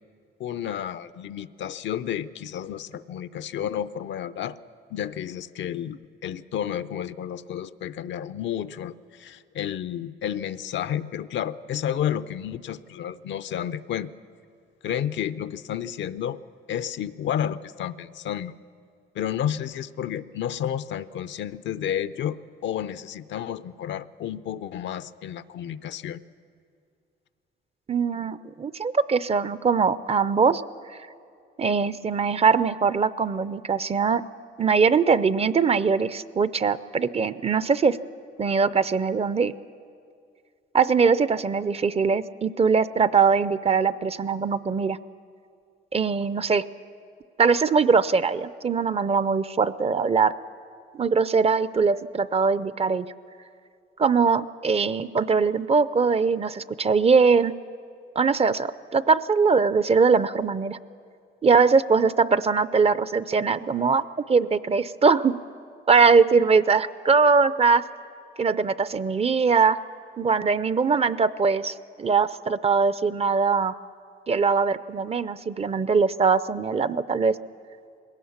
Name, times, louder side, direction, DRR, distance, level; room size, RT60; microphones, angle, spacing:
voice 1, 0.4-4.6 4.9-14.1 14.8-16.4 16.7-18.5 19.1-26.2, left 10 dB, 70° left, 14 dB, 0.6 m, -31 dB
voice 2, 27.9-30.6 31.6-34.2 34.6-38.0 38.4-39.5 40.7-45.0 45.9-46.6 47.4-50.3 50.9-53.1 54.0-57.5 58.2-60.8 61.4-65.4 65.9-67.8 68.4-69.8 70.2-73.7 74.3-77.4, right 5 dB, 30° right, 16 dB, 0.5 m, -21 dB
20.5 x 17.5 x 7.2 m, 2.3 s
cardioid pair, 90°, 20 cm